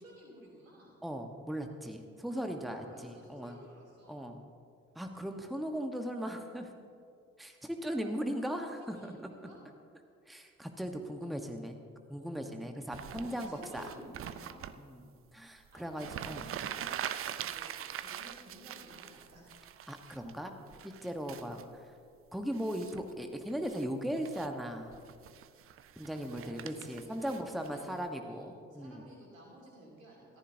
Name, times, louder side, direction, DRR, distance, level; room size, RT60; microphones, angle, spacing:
voice 1, 0.0-1.0 2.6-4.1 7.9-8.1 8.9-9.6 10.9-11.4 12.2-12.7 13.1-14.7 15.7-16.9 17.3-19.5 26.1-27.3 27.7-30.4, right 1 dB, 80° right, -3 dB, 3.2 m, -54 dB
voice 2, 1.0-3.6 4.1-4.4 4.9-6.7 7.4-9.2 9.4-9.5 10.3-11.8 12.1-13.8 14.8-15.0 15.3-16.5 19.9-20.5 20.8-21.9 22.3-24.9 26.0-29.0, equal, ahead, 5 dB, 1.2 m, -38 dB
sound 1, 12.9-14.8 15.7-15.8 15.9-20.3 20.7-21.6 22.5-23.1 23.5-23.9 24.2-24.5 24.9-28.0, right 10 dB, 35° right, 0.6 m, -43 dB
21.0 x 14.5 x 2.8 m, 2.3 s
figure-of-eight pair, 50°, 40 cm